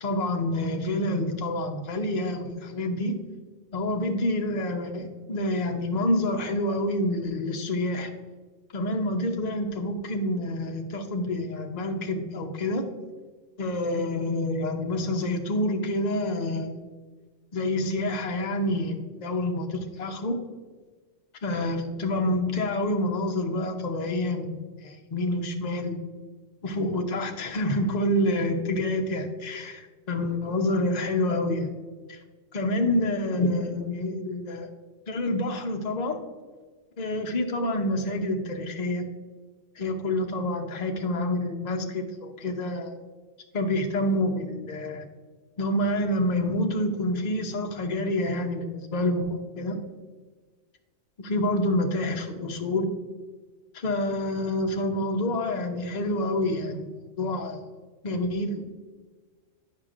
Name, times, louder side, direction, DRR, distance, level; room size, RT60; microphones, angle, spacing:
voice 1, 0.0-3.2 3.7-8.2 8.7-12.9 13.6-16.8 17.5-20.4 21.4-24.5 24.8-26.0 26.6-31.7 32.1-32.2 32.5-34.7 35.1-36.2 37.0-39.1 39.8-43.0 43.5-45.0 45.6-49.8 51.2-52.9 53.7-56.9 57.2-57.6 58.0-58.8, left 1 dB, 40° left, 3 dB, 0.7 m, -27 dB
9.4 x 5.6 x 2.5 m, 1.4 s
omnidirectional pair, 1.4 m